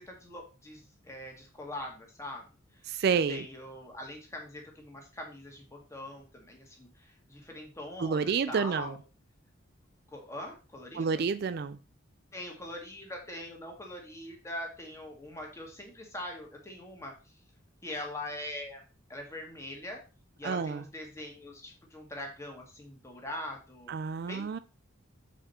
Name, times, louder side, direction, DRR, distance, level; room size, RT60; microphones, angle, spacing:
voice 1, 0.0-2.5 2.7-2.9 3.3-9.0 10.1-11.3 12.3-17.4 17.8-18.8 19.1-20.0 20.4-23.9 24.3-24.6, left 1 dB, 15° left, 1.9 m, -42 dB
voice 2, 2.9-3.4 8.0-8.9 10.9-11.8 20.4-20.8 23.9-24.6, right 6 dB, 50° right, 0.3 m, -29 dB
7.6 x 5.0 x 4.2 m
head